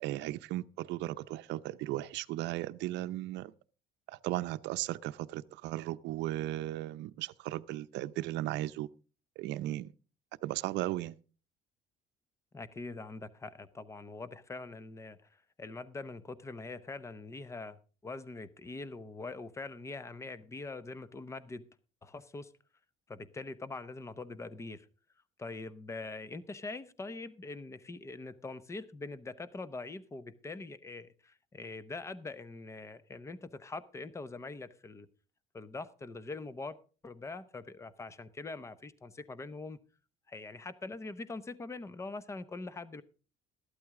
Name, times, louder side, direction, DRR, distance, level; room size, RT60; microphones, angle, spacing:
voice 1, 0.0-3.5 4.1-8.9 9.4-9.9 10.4-11.2, right 15 dB, 75° right, 0.6 m, -36 dB
voice 2, 12.5-15.2 15.6-21.6 22.0-22.5 23.1-24.9 25.4-35.1 35.5-36.8 37.0-39.8 40.3-43.0, left 3 dB, 15° left, 0.7 m, -43 dB
14.5 x 12.0 x 3.7 m
cardioid pair, 145°, 19 cm